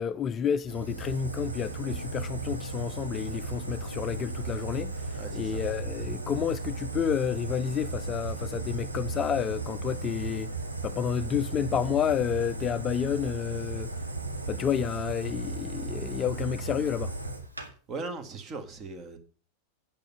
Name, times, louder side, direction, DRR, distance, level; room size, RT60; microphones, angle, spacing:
voice 1, 0.0-10.5 10.8-14.0 14.5-17.1, left 8 dB, 25° left, 0.5 m, -30 dB
Fire, 0.7-17.7, right 3 dB, 80° right, 1.9 m, -35 dB
voice 2, 5.1-5.6 17.9-19.2, right 3 dB, 30° right, 1.9 m, -38 dB
9.0 x 8.9 x 5.5 m
figure-of-eight pair, 90°, 0 cm